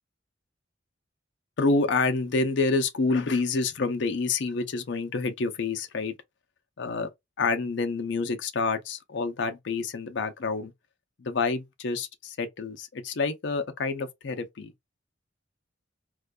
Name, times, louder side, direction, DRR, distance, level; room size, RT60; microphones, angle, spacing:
voice 1, 1.6-6.1 6.8-7.1 7.4-10.7 11.2-14.7, left 3 dB, 65° left, 0.5 m, -28 dB
2.4 x 2.2 x 2.3 m
head